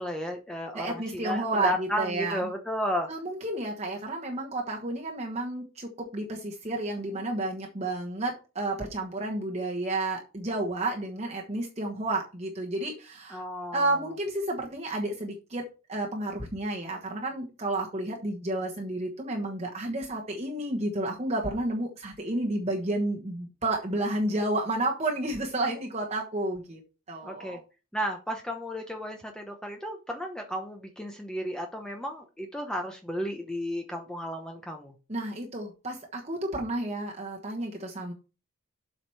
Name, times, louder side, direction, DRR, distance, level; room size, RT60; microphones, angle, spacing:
voice 1, 0.0-3.1 13.3-14.0 27.2-27.6 27.9-34.9, equal, 5° left, 3 dB, 0.8 m, -33 dB
voice 2, 0.7-2.5 3.1-13.4 13.7-15.6 15.9-26.8 27.1-27.6 35.1-38.1, right 2 dB, 30° right, 0 dB, 1.2 m, -31 dB
7.7 x 4.9 x 5.7 m, 0.32 s
head